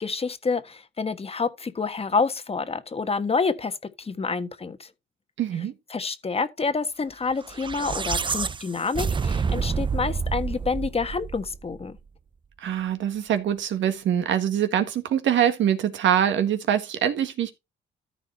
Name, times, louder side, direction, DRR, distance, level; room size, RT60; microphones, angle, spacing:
voice 1, 0.0-4.9 5.9-12.0, left 4 dB, 30° left, 1.4 m, -28 dB
voice 2, 5.4-5.7 12.6-17.5, right 9 dB, 70° right, 1.7 m, -24 dB
sound 1, 7.4-11.8, right 5 dB, 25° right, 0.5 m, -28 dB
13.5 x 4.8 x 4.4 m
cardioid pair, 90°, 20 cm